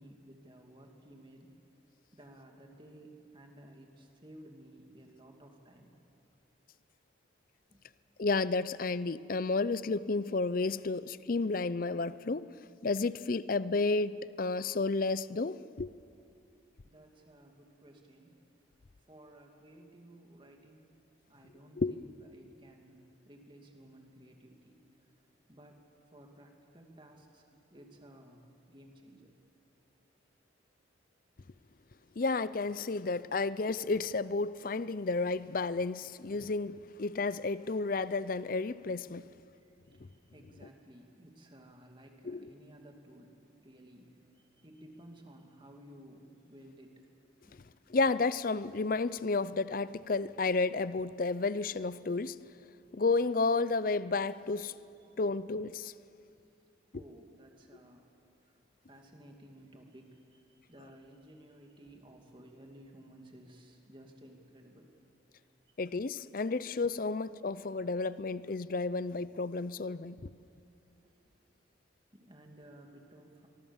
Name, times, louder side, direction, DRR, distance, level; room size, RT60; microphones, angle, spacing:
voice 1, 0.0-1.6 2.1-5.9 7.7-7.8 16.8-18.4 19.1-20.9 21.3-25.1 25.5-29.4 39.6-47.1 47.4-47.6 55.0-55.1 56.9-58.1 58.4-58.5 58.9-64.9 65.7-65.8 66.5-66.6 71.0-71.3 72.1-73.5, right 1 dB, 25° right, 2.6 m, -56 dB
voice 2, 8.2-12.5 12.8-15.9 21.8-22.0 32.2-39.3 42.2-42.4 47.9-52.4 52.9-54.7 55.2-55.9 65.8-70.3, left 3 dB, 45° left, 0.5 m, -31 dB
24.5 x 23.0 x 7.3 m
head